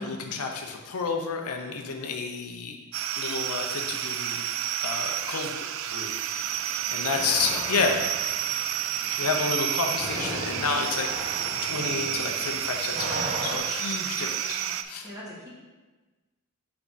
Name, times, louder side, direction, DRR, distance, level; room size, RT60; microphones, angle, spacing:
voice 1, 0.0-2.8 3.1-4.4 4.8-5.5 5.9-6.1 6.9-8.0 9.2-15.1, left 4 dB, 85° left, 3 dB, 0.7 m, -30 dB
sound 1, 2.9-14.8, right 10 dB, 65° right, 0.4 m, -30 dB
sound 2, 6.4-13.6, right 1 dB, 35° right, 1.1 m, -38 dB
voice 2, 7.1-7.8 14.2-14.7 15.0-15.5, left 1 dB, 15° right, -6 dB, 1.4 m, -41 dB
6.0 x 4.8 x 4.0 m, 1.2 s
head